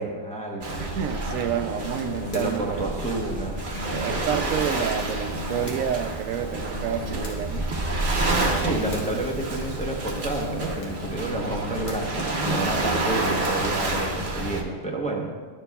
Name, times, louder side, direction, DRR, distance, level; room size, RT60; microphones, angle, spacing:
voice 1, 0.0-0.8 2.3-3.6 8.5-15.3, right 2 dB, 5° left, -2 dB, 0.8 m, -30 dB
Waves surf, 0.6-14.6, right 2 dB, 45° right, 0.9 m, -29 dB
sound 1, 0.7-14.2, left 2 dB, 45° left, 1.0 m, -39 dB
voice 2, 0.8-2.9 3.9-7.7, right 8 dB, 85° right, 8 dB, 1.0 m, -29 dB
13.0 x 6.9 x 2.3 m, 1.5 s
omnidirectional pair, 1.3 m